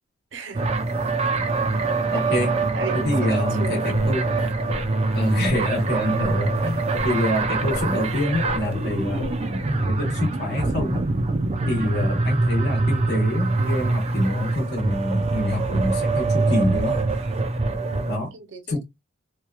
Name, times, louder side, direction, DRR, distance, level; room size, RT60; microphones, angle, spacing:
voice 1, 0.3-0.7 2.7-3.9 17.7-18.8, right 4 dB, 65° right, 0.6 m, -36 dB
sound 1, 0.5-18.2, right 3 dB, 30° right, 0.4 m, -24 dB
voice 2, 2.1-2.6 2.9-4.3 5.1-9.3 9.9-11.0 11.6-17.0 18.1-18.3 18.7-18.8, left 1 dB, 50° left, 1.0 m, -26 dB
sound 2, 3.9-9.9, left 3 dB, 90° left, 0.5 m, -37 dB
2.9 x 2.2 x 2.2 m
head